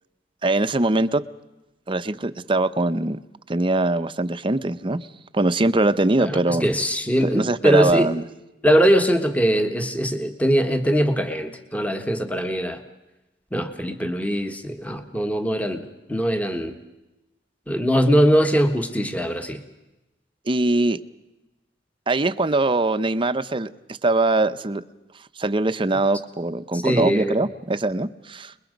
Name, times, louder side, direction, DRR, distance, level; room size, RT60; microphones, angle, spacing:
voice 1, 0.4-1.2 1.9-3.2 3.5-5.0 5.3-6.6 7.2-8.2 20.5-21.0 22.1-23.7 24.0-24.8 25.4-28.5, right 2 dB, 30° right, 12 dB, 0.7 m, -22 dB
voice 2, 6.2-8.1 8.6-12.8 13.5-16.8 17.7-19.6 26.7-27.4, equal, 10° left, 6 dB, 1.5 m, -21 dB
28.0 x 21.5 x 5.3 m, 1.0 s
head